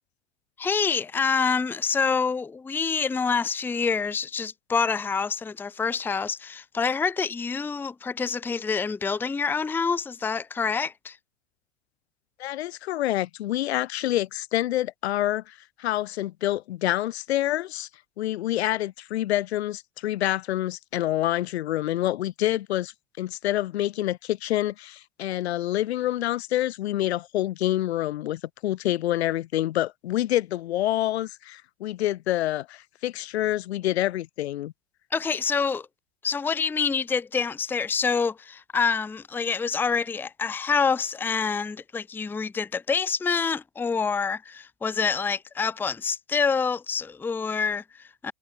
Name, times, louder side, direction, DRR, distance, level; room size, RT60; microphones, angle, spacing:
voice 1, 0.6-11.2 35.1-35.9 36.2-48.3, left 5 dB, 5° left, 0.6 m, -27 dB
voice 2, 12.4-17.9 18.2-34.7, left 14 dB, 80° left, 1.2 m, -27 dB
hypercardioid pair, 125°, 32 cm